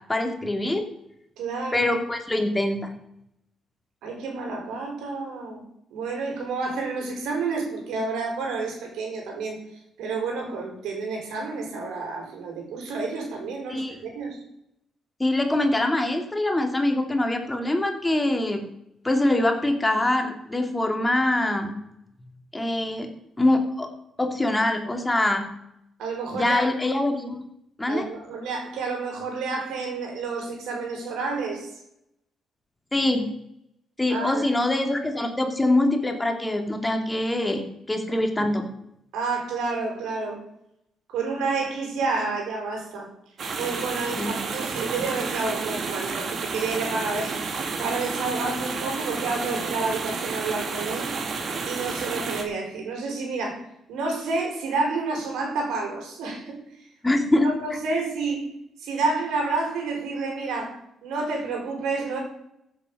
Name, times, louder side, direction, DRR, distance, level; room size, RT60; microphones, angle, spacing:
voice 1, 0.1-0.8 1.7-2.9 13.7-13.9 15.2-18.7 19.0-21.7 22.5-23.1 23.4-23.9 24.2-25.5 26.3-27.4 27.8-28.1 32.9-33.2 34.0-38.6 44.2-44.4 57.0-57.5, left 1 dB, 15° left, 4 dB, 2.4 m, -24 dB
voice 2, 1.4-1.9 4.0-5.6 5.9-9.6 10.0-14.4 26.0-26.6 27.9-31.7 34.1-34.4 39.1-40.4 41.1-43.1 43.6-47.4 47.8-51.1 51.6-56.6 57.4-58.5 58.8-62.2, right 3 dB, 85° right, 1 dB, 4.7 m, -29 dB
sound 1, 43.4-52.4, right 4 dB, 55° right, 2.3 m, -31 dB
15.0 x 8.1 x 5.5 m, 0.78 s
cardioid pair, 90°, 0 cm